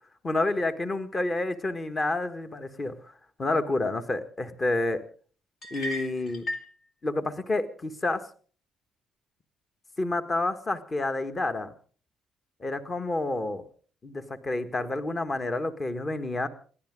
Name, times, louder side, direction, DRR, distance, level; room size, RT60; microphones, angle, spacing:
voice 1, 0.2-2.9 3.4-5.0 5.7-6.5 7.0-8.2 10.0-11.7 12.6-13.6 14.0-16.5, left 2 dB, 30° left, 10 dB, 1.7 m, -29 dB
sound 1, 5.6-6.7, left 1 dB, 60° left, 2.8 m, -35 dB
30.0 x 11.0 x 3.8 m, 0.43 s
figure-of-eight pair, 45°, 0 cm